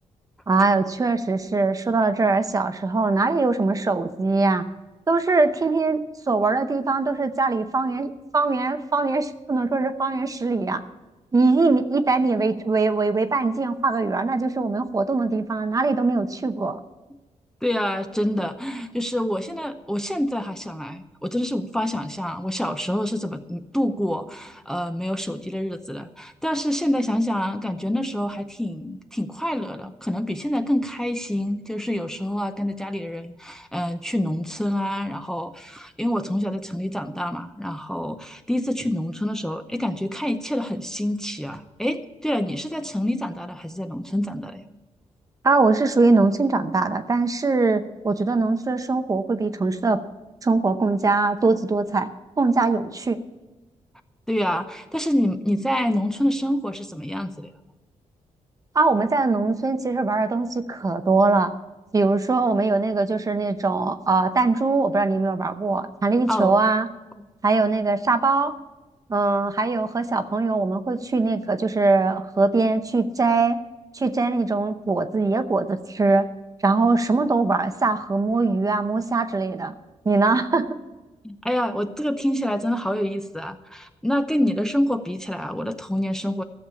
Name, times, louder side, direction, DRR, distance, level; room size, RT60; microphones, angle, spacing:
voice 1, 0.5-4.6 5.1-10.8 11.3-16.8 45.4-50.0 50.4-52.1 52.4-53.2 58.7-61.5 61.9-66.9 67.4-68.5 69.1-73.6 73.9-76.3 76.6-79.7 80.1-80.8, right 3 dB, 30° right, 9 dB, 0.7 m, -22 dB
voice 2, 17.6-44.6 54.3-57.5 66.3-66.7 81.2-86.4, equal, 5° left, 6 dB, 0.7 m, -27 dB
14.0 x 7.3 x 8.2 m, 1.1 s
wide cardioid pair, 135°, 12 cm